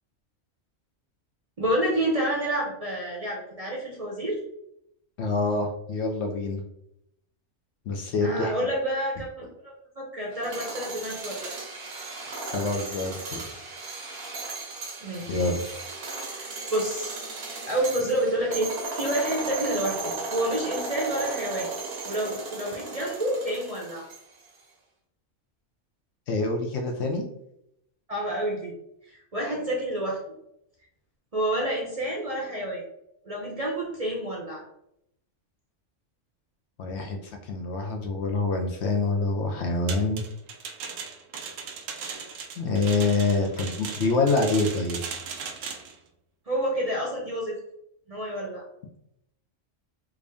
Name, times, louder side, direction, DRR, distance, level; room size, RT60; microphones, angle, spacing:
voice 1, 1.6-4.4 8.2-11.5 15.0-15.5 16.1-17.1 17.7-18.7 18.9-21.7 22.0-24.1 28.1-28.7 29.1-30.2 31.3-32.8 33.2-34.6 46.5-47.6 48.1-48.6, right 1 dB, 35° right, -3 dB, 0.7 m, -29 dB
voice 2, 5.2-6.6 7.9-8.5 12.5-13.6 15.3-15.8 26.3-27.3 36.8-37.2 37.4-40.2 42.6-45.0, left 3 dB, 65° left, 3 dB, 0.8 m, -26 dB
sound 1, 10.3-24.5, right 3 dB, 60° right, 1.0 m, -36 dB
sound 2, 39.9-45.9, right 6 dB, 85° right, 0.9 m, -37 dB
3.5 x 2.5 x 3.3 m, 0.77 s
omnidirectional pair, 1.3 m